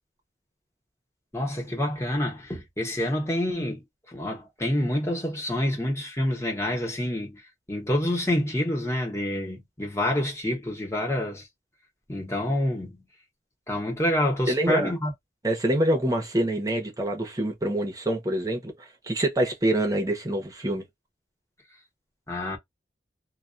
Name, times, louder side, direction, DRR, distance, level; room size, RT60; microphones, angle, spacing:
voice 1, 1.3-3.8 4.1-7.4 7.7-11.5 12.1-13.0 13.7-15.1 22.3-22.6, left 1 dB, 15° left, 0.9 m, -27 dB
voice 2, 14.5-14.9 15.4-20.8, right 1 dB, 20° right, 0.8 m, -26 dB
2.3 x 2.2 x 2.5 m
head